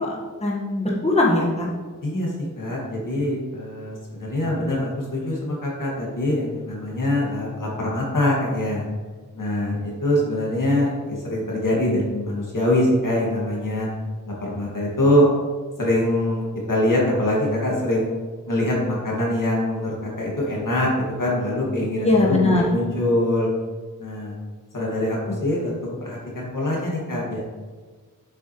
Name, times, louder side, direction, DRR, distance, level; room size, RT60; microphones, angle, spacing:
voice 1, 0.0-1.7 22.0-22.6, left 2 dB, 20° left, -4 dB, 1.5 m, -20 dB
voice 2, 2.0-8.9 9.3-13.9 14.3-15.3 15.8-16.4 16.7-18.1 18.5-20.9 21.2-23.5 24.0-24.3 24.7-27.4, left 1 dB, 75° left, -4 dB, 2.1 m, -23 dB
7.7 x 6.9 x 3.1 m, 1.4 s
wide cardioid pair, 80°, 32 cm